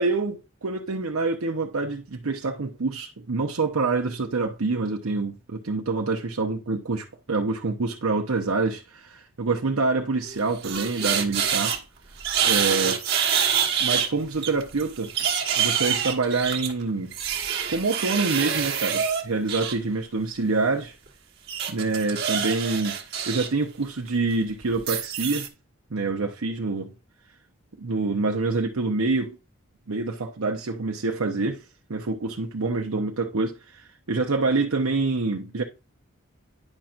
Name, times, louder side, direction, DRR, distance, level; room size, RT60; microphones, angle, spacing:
voice 1, 0.0-11.8 12.4-13.0 13.8-15.1 15.5-17.1 17.7-20.9 21.7-23.0 23.3-25.5 25.9-26.9 27.8-29.4 29.9-31.6 31.9-35.6, right 3 dB, 80° right, 0.8 m, -26 dB
sound 1, 10.3-11.8 12.2-14.1 14.4-19.7 21.5-23.5 23.8-24.1 24.8-25.5, right 8 dB, 50° right, 1.2 m, -26 dB
9.8 x 5.8 x 2.5 m
head